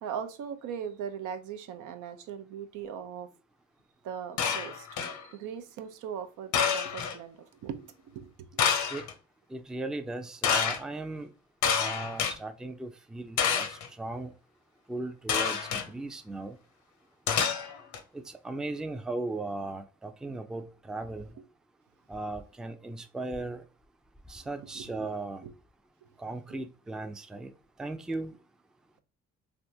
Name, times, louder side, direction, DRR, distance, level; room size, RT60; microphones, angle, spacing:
voice 1, 0.0-3.3 4.0-4.9 5.1-8.7 24.7-25.1 25.4-25.5, right 8 dB, 85° right, 0.6 m, -39 dB
sound 1, 4.4-5.2 6.5-7.2 8.6-9.1 10.4-10.8 11.6-12.3 13.4-13.9 15.3-15.9 17.3-18.0, left 7 dB, 70° left, 0.7 m, -28 dB
voice 2, 9.5-11.3 11.8-14.3 14.9-16.5 18.1-21.3 22.1-23.6 24.3-25.4 26.2-27.5 27.8-28.3, right 2 dB, ahead, 0.3 m, -37 dB
3.4 x 2.5 x 2.7 m
cardioid pair, 90°, 30 cm